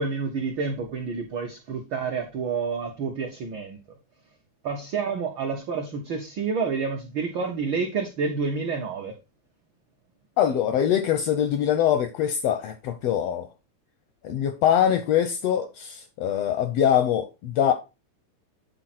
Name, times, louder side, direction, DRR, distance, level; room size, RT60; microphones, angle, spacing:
voice 1, 0.0-3.8 4.6-9.1, right 5 dB, 75° right, 1.1 m, -29 dB
voice 2, 10.4-13.5 14.2-17.7, left 9 dB, 80° left, 1.5 m, -23 dB
8.9 x 4.0 x 4.2 m
omnidirectional pair, 3.4 m